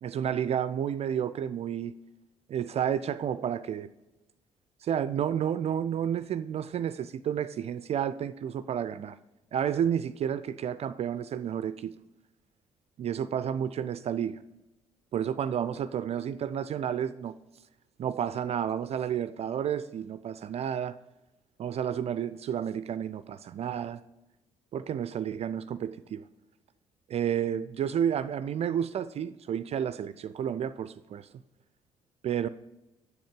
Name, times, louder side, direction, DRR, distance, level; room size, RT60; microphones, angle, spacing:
voice 1, 0.0-1.9 2.5-3.9 4.8-9.2 9.5-11.9 13.0-14.4 15.1-17.3 18.0-21.0 21.6-24.0 24.7-26.2 27.1-31.3 32.2-32.5, right 9 dB, 40° right, 0.4 m, -31 dB
7.6 x 6.6 x 5.2 m
figure-of-eight pair, 45°, 16 cm